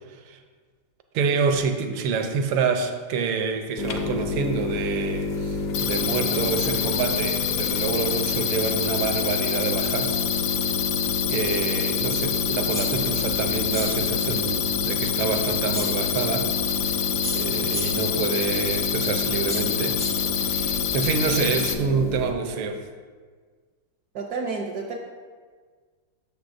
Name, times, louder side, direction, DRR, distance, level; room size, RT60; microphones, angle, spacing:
voice 1, 1.1-10.2 11.3-17.0 17.3-20.0 20.4-22.9, right 5 dB, 85° right, 6 dB, 1.6 m, -27 dB
sound 1, 3.8-22.3, left 3 dB, 60° left, 0.9 m, -30 dB
sound 2, 5.7-21.7, left 9 dB, 80° left, 1.5 m, -27 dB
sound 3, 12.7-13.1 13.7-14.1 15.7-16.1 17.2-18.1 19.5-20.3, equal, 35° left, 0.4 m, -35 dB
voice 2, 24.1-25.0, right 4 dB, 70° right, 1 dB, 0.9 m, -30 dB
13.0 x 6.8 x 2.6 m, 1.5 s
omnidirectional pair, 2.3 m